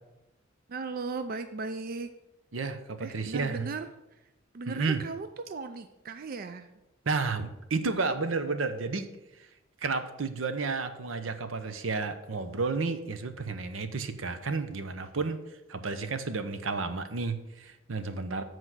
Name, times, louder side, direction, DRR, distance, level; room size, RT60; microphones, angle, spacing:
voice 1, 0.7-2.1 3.0-4.2 4.5-6.7, right 4 dB, 50° right, 9 dB, 0.4 m, -37 dB
voice 2, 2.5-3.7 4.7-5.0 7.1-9.1 9.4-9.5 9.8-18.4, right 4 dB, 85° right, 10 dB, 0.7 m, -32 dB
7.9 x 4.6 x 6.1 m, 0.94 s
head